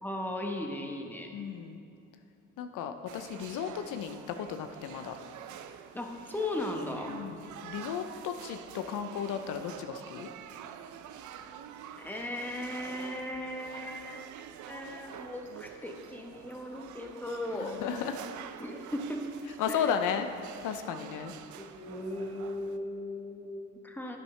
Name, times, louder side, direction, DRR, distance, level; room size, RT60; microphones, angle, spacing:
voice 1, 0.0-1.3 5.9-7.2 12.0-14.2 14.7-17.8 18.6-19.2 19.7-19.9 21.6-24.2, left 1 dB, 5° left, 2 dB, 1.0 m, -37 dB
voice 2, 1.3-1.8 2.6-5.2 7.1-10.3 17.6-18.2 19.6-20.3 20.6-21.3, left 7 dB, 90° left, 8 dB, 0.6 m, -34 dB
sound 1, 3.1-22.8, right 9 dB, 80° right, 0.5 m, -47 dB
10.5 x 9.0 x 3.2 m, 2.5 s
cardioid pair, 90°, 30 cm